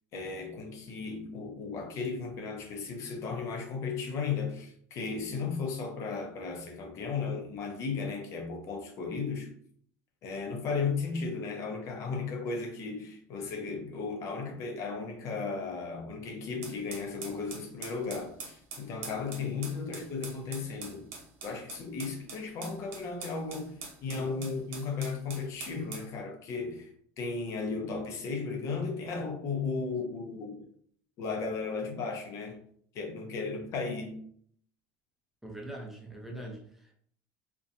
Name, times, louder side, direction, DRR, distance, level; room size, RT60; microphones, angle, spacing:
voice 1, 0.1-9.5 10.2-21.1 21.4-30.6 31.2-32.6 32.9-34.2, left 4 dB, 45° left, 0.5 m, -35 dB
sound 1, 16.6-26.1, right 5 dB, 85° right, 0.8 m, -44 dB
voice 2, 35.4-36.9, right 1 dB, 5° right, 0.5 m, -42 dB
2.6 x 2.2 x 2.5 m
cardioid pair, 140°, 7 cm